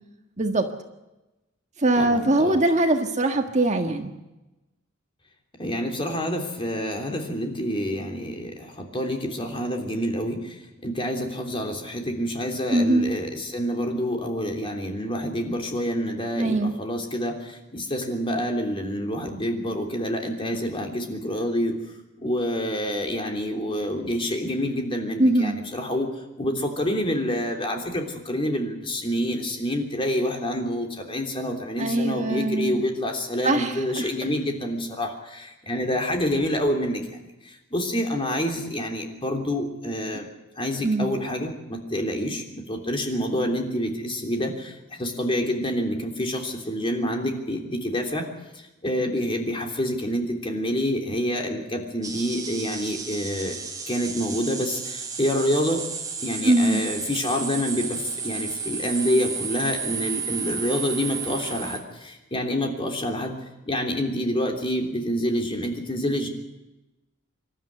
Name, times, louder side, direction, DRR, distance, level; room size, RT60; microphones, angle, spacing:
voice 1, 0.4-0.7 1.8-4.1 12.7-13.1 16.4-16.7 25.2-25.6 31.8-32.8 33.4-34.1 40.8-41.1 56.4-56.9, right 2 dB, 35° right, 5 dB, 1.6 m, -22 dB
voice 2, 2.0-2.6 5.6-21.8 22.2-26.1 26.4-40.3 40.6-48.3 48.8-53.6 53.9-55.8 56.2-63.3 63.7-66.3, equal, 25° left, 3 dB, 3.3 m, -27 dB
sound 1, 52.0-61.8, right 5 dB, 20° right, 2.6 m, -33 dB
26.0 x 12.5 x 9.6 m, 1.0 s
head